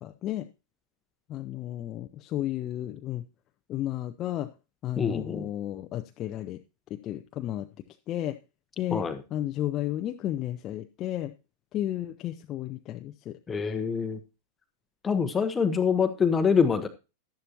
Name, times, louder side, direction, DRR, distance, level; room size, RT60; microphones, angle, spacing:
voice 1, 0.0-0.5 1.3-3.2 3.7-4.5 4.8-6.6 6.9-7.7 8.1-8.4 8.8-9.0 9.3-11.3 11.7-13.4, left 13 dB, 35° left, 7 dB, 0.6 m, -33 dB
voice 2, 5.0-5.5 8.9-9.2 13.5-14.2 15.0-16.9, left 6 dB, 15° left, 9 dB, 0.9 m, -25 dB
12.0 x 11.0 x 2.9 m, 0.29 s
figure-of-eight pair, 90°, 0 cm